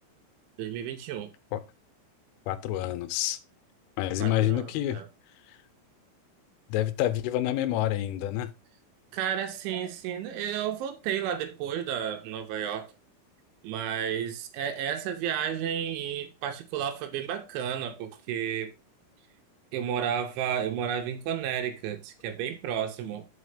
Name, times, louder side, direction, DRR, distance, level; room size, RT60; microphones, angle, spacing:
voice 1, 0.6-1.3 4.2-5.1 9.1-12.9 13.6-18.7 19.7-23.3, right 9 dB, 80° right, 3.0 m, -32 dB
voice 2, 2.5-3.4 4.0-5.0 5.5-5.6 6.7-8.5, left 13 dB, 85° left, 3.2 m, -28 dB
5.9 x 5.5 x 4.9 m
omnidirectional pair, 5.7 m